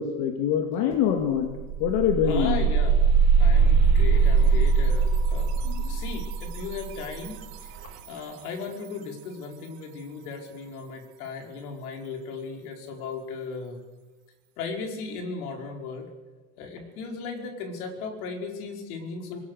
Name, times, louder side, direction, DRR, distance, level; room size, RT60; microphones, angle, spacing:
voice 1, 0.0-1.5 1.8-2.6 5.7-6.0, left 9 dB, 65° left, 4 dB, 2.4 m, -25 dB
sound 1, 0.9-1.0 1.3-8.1, right 5 dB, 55° right, 4.0 m, -22 dB
voice 2, 2.2-2.9 3.4-5.5 5.8-7.7 8.1-13.8 14.6-16.1 16.6-19.4, left 4 dB, 85° left, 2 dB, 5.1 m, -36 dB
26.0 x 20.5 x 6.6 m, 1.2 s
cardioid pair, 150°, 43 cm